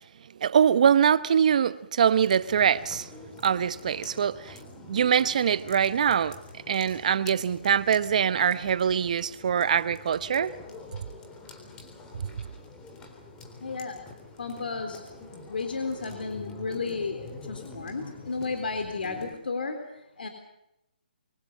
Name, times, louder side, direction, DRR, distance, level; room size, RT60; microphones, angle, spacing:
voice 1, 0.4-3.1 3.4-4.6 4.9-6.4 6.7-10.5 12.1-12.3, right 8 dB, 45° right, 0.9 m, -23 dB
sound 1, 2.1-19.3, left 3 dB, 10° left, 3.7 m, -46 dB
voice 2, 13.6-14.0 14.4-15.0 15.5-19.8 20.2-20.3, left 4 dB, 70° left, 3.9 m, -33 dB
25.5 x 25.0 x 5.5 m
hypercardioid pair, 160°, 5 cm